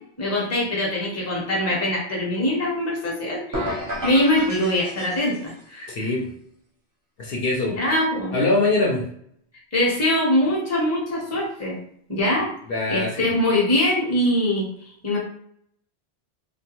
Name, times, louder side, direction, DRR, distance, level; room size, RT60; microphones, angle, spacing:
voice 1, 0.2-3.8 4.0-6.1 7.7-8.3 9.7-11.8 12.1-12.5 12.9-14.7 15.0-15.2, left 1 dB, 15° left, -3 dB, 0.7 m, -23 dB
sound 1, 3.5-5.6, equal, 25° right, 0.5 m, -31 dB
voice 2, 5.9-6.3 7.2-7.8 8.3-9.0 12.7-13.3, left 2 dB, 65° left, -2 dB, 0.8 m, -23 dB
2.3 x 2.2 x 2.9 m, 0.65 s
omnidirectional pair, 1.1 m